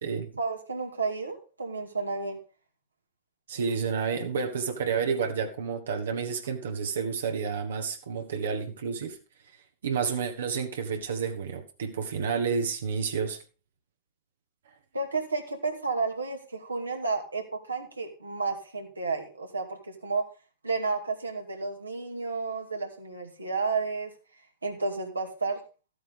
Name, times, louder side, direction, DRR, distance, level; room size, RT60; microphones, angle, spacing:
voice 1, 0.4-2.4 14.9-20.2 20.6-24.1 24.6-25.6, right 4 dB, 80° right, 2.2 m, -31 dB
voice 2, 3.5-9.2 9.8-13.4, right 6 dB, 65° right, 1.5 m, -30 dB
13.5 x 8.6 x 3.8 m
figure-of-eight pair, 90°, 0 cm